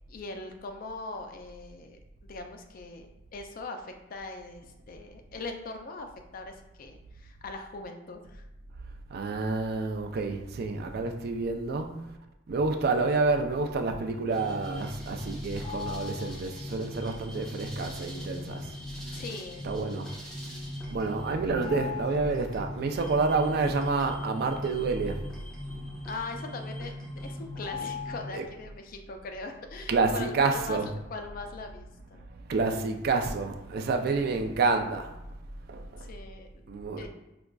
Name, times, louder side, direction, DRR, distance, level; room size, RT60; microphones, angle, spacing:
voice 1, 0.1-8.4 19.1-19.6 26.1-30.8 31.1-32.3 36.0-36.5 37.0-37.1, left 3 dB, 45° left, 0.4 m, -41 dB
voice 2, 9.1-12.1 12.5-18.7 19.6-20.1 20.9-25.2 28.3-28.4 29.9-31.0 32.1-32.2 32.5-35.1 35.7-36.1 36.7-37.1, right 3 dB, 50° right, 0.3 m, -29 dB
sound 1, 14.3-28.4, left 2 dB, 5° left, 0.7 m, -39 dB
5.0 x 2.3 x 2.2 m
head